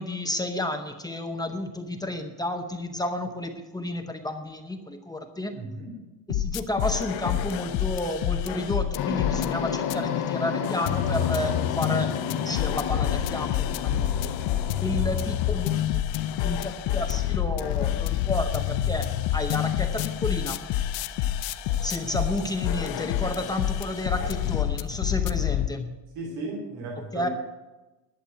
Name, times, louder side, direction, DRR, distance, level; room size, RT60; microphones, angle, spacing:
voice 1, 0.0-5.5 6.3-12.1 12.4-14.1 14.8-16.0 16.4-20.6 21.8-25.9 27.1-27.3, left 1 dB, 10° left, 4 dB, 0.7 m, -31 dB
voice 2, 5.5-6.0 26.1-27.3, right 2 dB, 55° right, -1 dB, 2.8 m, -35 dB
sound 1, 6.3-9.4 9.9-10.0 10.6-25.7, left 11 dB, 80° left, 0.8 m, -28 dB
sound 2, 8.9-15.8, left 8 dB, 60° left, 1.3 m, -31 dB
11.5 x 8.0 x 9.0 m, 1.1 s
cardioid pair, 165°, 44 cm